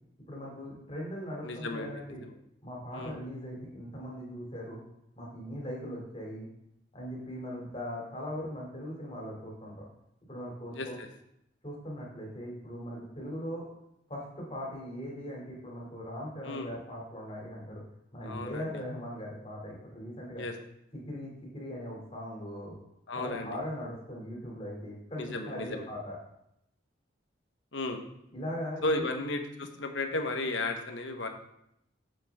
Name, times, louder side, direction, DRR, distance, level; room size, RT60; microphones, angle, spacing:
voice 1, 0.3-2.2 2.6-4.8 5.1-6.5 6.9-9.8 10.3-10.9 11.6-13.7 14.1-17.8 18.1-20.5 21.1-22.7 23.1-26.1 28.3-29.1, equal, 30° left, -3 dB, 2.7 m, -40 dB
voice 2, 1.4-1.9 2.3-2.4 2.9-3.2 10.7-11.1 16.4-16.7 18.2-18.7 20.4-20.5 23.1-23.5 25.2-25.8 27.7-28.0 28.8-31.3, left 2 dB, 80° left, 4 dB, 1.0 m, -34 dB
7.7 x 7.5 x 3.5 m, 0.79 s
head